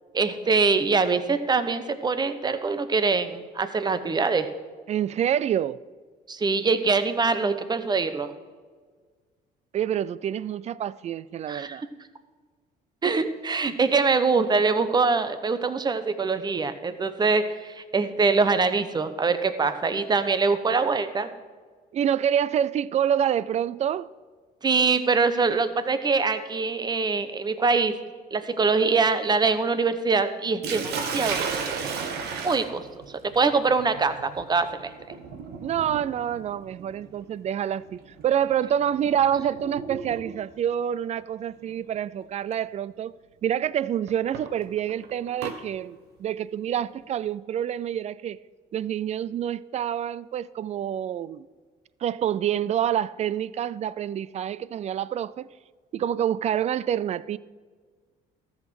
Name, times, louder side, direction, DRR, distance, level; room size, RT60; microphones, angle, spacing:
voice 1, 0.1-4.5 6.3-8.3 11.5-11.8 13.0-21.3 24.6-28.0 28.3-31.4 31.6-32.0 32.4-32.8 33.3-34.9, right 4 dB, 25° right, 0.9 m, -24 dB
voice 2, 4.9-5.8 9.7-11.8 21.9-24.1 35.6-43.1 43.4-48.4 48.7-51.4 52.0-55.5 55.9-57.4, right 9 dB, 40° right, 0.4 m, -27 dB
Sink (filling or washing), 30.6-40.6 41.7-42.0 42.5-42.6 44.1-45.6, right 5 dB, 75° right, 1.4 m, -35 dB
13.5 x 6.4 x 6.3 m
cardioid pair, 110°, 17 cm